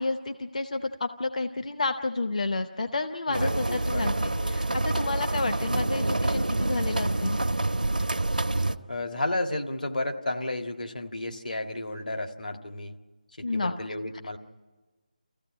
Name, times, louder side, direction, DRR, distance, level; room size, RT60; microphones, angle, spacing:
voice 1, 0.0-7.4 13.4-14.0, left 3 dB, 60° left, 8 dB, 0.8 m, -30 dB
voice 2, 3.3-4.7 8.9-13.0 13.4-14.4, left 2 dB, 75° left, 5 dB, 1.7 m, -33 dB
sound 1, 3.3-8.8, right 2 dB, 85° right, 1.0 m, -27 dB
25.5 x 15.5 x 10.0 m, 1.3 s
figure-of-eight pair, 160°, 4 cm